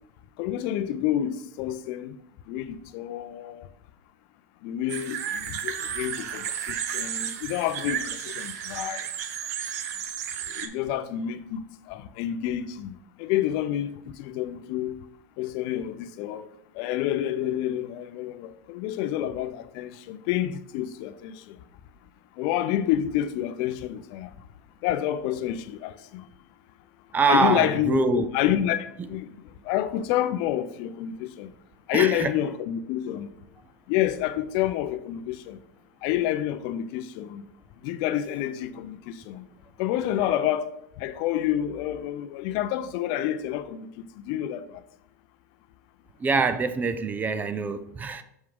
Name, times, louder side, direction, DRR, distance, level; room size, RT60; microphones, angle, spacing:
voice 1, 0.4-2.2 2.5-3.7 4.6-9.0 10.5-11.6 11.9-13.9 14.2-15.0 15.4-16.5 16.7-21.6 22.4-24.3 24.8-26.3 27.3-29.3 29.6-31.5 31.9-33.3 33.9-35.6 36.0-37.4 37.8-39.4 39.8-43.9 44.2-44.8, left 12 dB, 55° left, 0.5 m, -28 dB
sound 1, 4.9-10.7, right 9 dB, 70° right, 0.7 m, -33 dB
voice 2, 27.1-28.3 31.9-32.3 40.2-40.3 46.2-48.2, right 4 dB, 20° right, 0.4 m, -24 dB
6.4 x 4.6 x 3.7 m
hypercardioid pair, 115°, 9 cm